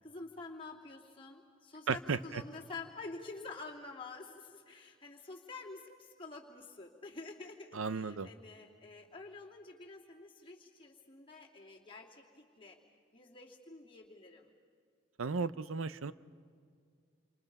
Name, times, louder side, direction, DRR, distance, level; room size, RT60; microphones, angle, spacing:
voice 1, 0.0-12.8 13.1-14.5, left 3 dB, 25° left, -2 dB, 2.7 m, -48 dB
voice 2, 1.9-2.4 7.7-8.3 15.2-16.1, right 4 dB, 85° right, 15 dB, 0.7 m, -35 dB
29.0 x 26.5 x 5.4 m, 2.2 s
head